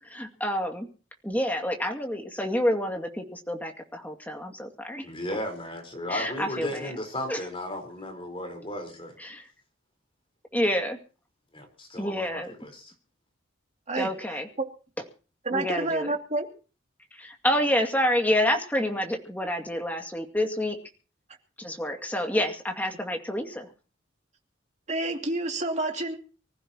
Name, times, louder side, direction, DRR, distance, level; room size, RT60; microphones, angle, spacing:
voice 1, 0.0-0.9 1.2-5.1 6.1-6.9 7.3-7.5 9.2-9.5 10.5-11.0 12.0-12.5 14.0-14.5 15.5-16.1 17.1-20.8 21.6-23.7, left 1 dB, 10° left, 3 dB, 2.3 m, -28 dB
voice 2, 5.0-9.1 11.5-12.9, left 1 dB, 25° left, 4 dB, 4.3 m, -35 dB
voice 3, 15.5-16.5 24.9-26.2, right 2 dB, 35° right, 3 dB, 2.6 m, -28 dB
25.0 x 15.0 x 2.9 m, 0.37 s
head